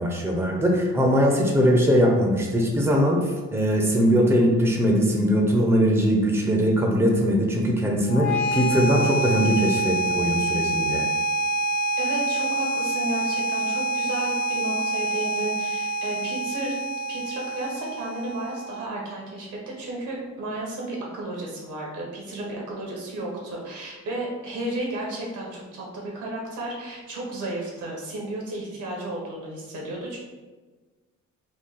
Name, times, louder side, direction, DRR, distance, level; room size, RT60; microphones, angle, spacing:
voice 1, 0.0-11.0, equal, 10° right, 0 dB, 0.7 m, -21 dB
sound 1, 8.1-19.1, right 1 dB, 70° left, 0.8 m, -27 dB
voice 2, 12.0-16.7 17.1-30.2, right 1 dB, 80° right, -2 dB, 1.4 m, -33 dB
3.8 x 2.3 x 4.1 m, 1.3 s
cardioid pair, 90°, 30 cm